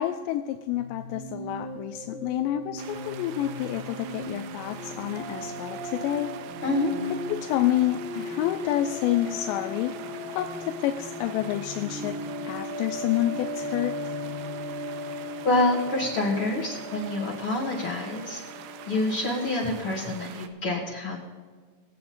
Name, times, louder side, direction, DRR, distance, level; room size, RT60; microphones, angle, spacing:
voice 1, 0.0-6.4 7.3-9.9 10.3-12.2 12.4-14.1, left 13 dB, 85° left, 7 dB, 2.7 m, -28 dB
sound 1, 0.7-20.2, left 1 dB, 25° right, 3.4 m, -37 dB
sound 2, 2.8-20.5, right 9 dB, 80° right, 2.7 m, -44 dB
voice 2, 15.4-18.4 18.9-21.2, left 2 dB, 55° left, -3 dB, 1.5 m, -27 dB
21.5 x 7.8 x 4.3 m, 1.5 s
omnidirectional pair, 5.1 m